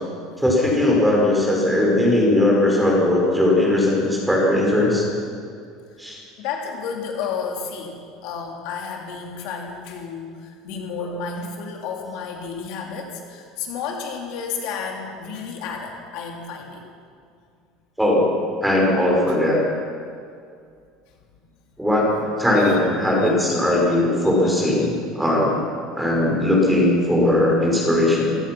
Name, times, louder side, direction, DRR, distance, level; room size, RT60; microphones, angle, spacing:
voice 1, 0.4-5.1 6.0-6.2 18.0-18.3 18.6-19.6 21.8-25.6 25.9-28.4, left 1 dB, ahead, -2 dB, 5.1 m, -19 dB
voice 2, 6.4-16.8 22.6-22.8 23.2-23.3, left 5 dB, 55° left, 1 dB, 2.9 m, -32 dB
28.5 x 17.0 x 6.0 m, 2.2 s
cardioid pair, 175°, 0 cm